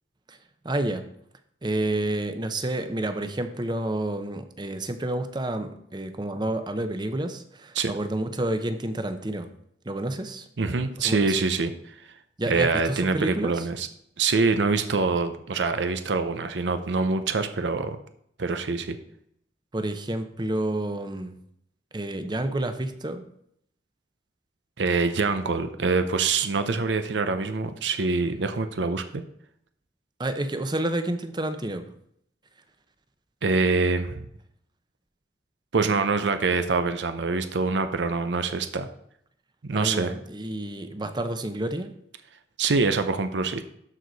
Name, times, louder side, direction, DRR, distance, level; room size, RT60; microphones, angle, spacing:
voice 1, 0.6-1.1 1.6-9.5 9.9-10.5 11.0-11.4 12.4-13.6 19.7-21.4 21.9-23.3 30.2-31.9 39.7-41.9, right 1 dB, 25° right, 8 dB, 0.7 m, -29 dB
voice 2, 10.6-11.7 12.5-13.9 14.2-18.0 18.4-19.0 24.8-29.2 33.4-34.2 35.7-38.9 39.6-40.1 42.6-43.6, right 4 dB, 90° right, 9 dB, 0.7 m, -25 dB
13.0 x 4.7 x 4.0 m, 0.71 s
head